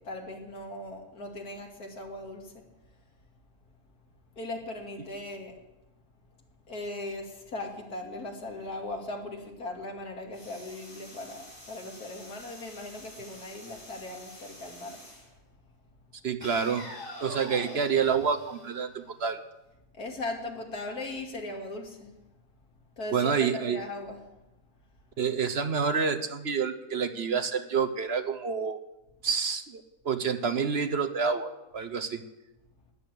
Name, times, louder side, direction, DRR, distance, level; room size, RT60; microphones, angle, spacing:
voice 1, 0.0-2.6 4.4-5.6 6.7-15.0 19.9-22.1 23.0-24.2, left 2 dB, 80° left, 1 dB, 3.0 m, -38 dB
sound 1, 10.3-15.3 16.4-19.3, left 1 dB, 15° left, 7.1 m, -46 dB
voice 2, 16.2-16.9 17.2-19.4 23.1-23.8 25.2-28.8 29.2-32.2, right 6 dB, 50° right, 9 dB, 1.0 m, -28 dB
14.0 x 10.5 x 8.3 m, 0.99 s
omnidirectional pair, 1.6 m